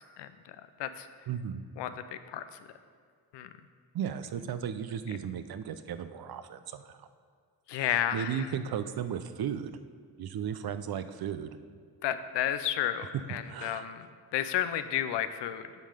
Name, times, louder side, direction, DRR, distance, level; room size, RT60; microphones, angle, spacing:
voice 1, 1.3-1.6 3.9-7.1 7.7-9.7 10.2-11.5 13.4-13.9, right 8 dB, 60° right, 11 dB, 0.6 m, -35 dB
voice 2, 1.8-2.4 3.3-3.5 7.7-8.5 12.0-14.1 14.3-15.7, left 11 dB, 85° left, 11 dB, 0.6 m, -31 dB
9.1 x 5.5 x 5.0 m, 2.1 s
cardioid pair, 60°, 41 cm